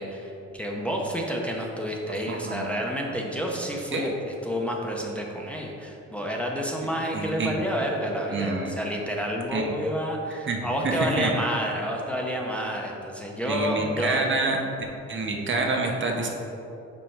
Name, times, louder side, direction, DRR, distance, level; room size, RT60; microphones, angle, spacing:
voice 1, 0.0-4.1 4.4-14.3, equal, 5° left, -1 dB, 0.7 m, -29 dB
voice 2, 2.3-2.7 3.9-4.1 7.1-7.5 8.3-8.8 9.5-9.7 10.3-10.6 10.8-11.3 13.4-14.6 15.1-16.3, right 3 dB, 40° right, 1 dB, 0.7 m, -27 dB
5.3 x 4.3 x 4.4 m, 2.8 s
cardioid pair, 90°, 30 cm